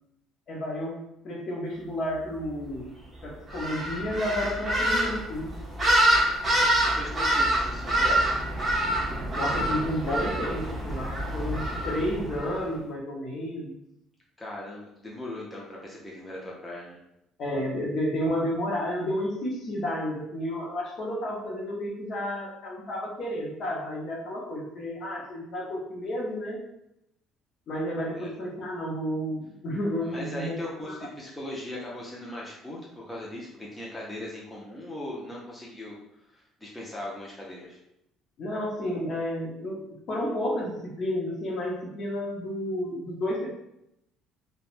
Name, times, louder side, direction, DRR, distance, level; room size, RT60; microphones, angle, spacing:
voice 1, 0.5-2.9 3.2-5.5 9.3-13.8 17.4-26.6 27.7-30.6 30.9-31.0 38.4-43.5, left 1 dB, 50° left, -2 dB, 0.7 m, -31 dB
sound 1, 3.5-12.6, right 1 dB, 25° right, 0.9 m, -26 dB
voice 2, 6.9-8.4 14.4-17.0 28.2-28.3 30.0-36.0 36.3-37.8, left 1 dB, 10° left, -5 dB, 0.5 m, -39 dB
3.0 x 2.2 x 2.5 m, 0.82 s
cardioid pair, 125°, 0 cm